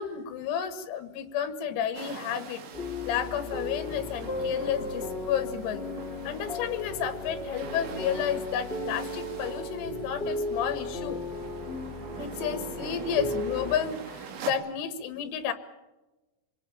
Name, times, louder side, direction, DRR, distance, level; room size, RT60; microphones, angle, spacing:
voice 1, 0.0-2.6 3.1-5.8 6.2-11.2 12.2-15.5, left 8 dB, 90° left, 10 dB, 4.5 m, -31 dB
sound 1, 1.9-14.5, right 6 dB, 70° right, 4.8 m, -44 dB
sound 2, 2.7-13.8, left 2 dB, 20° left, 2.0 m, -35 dB
25.5 x 21.0 x 7.1 m, 1.1 s
omnidirectional pair, 6.0 m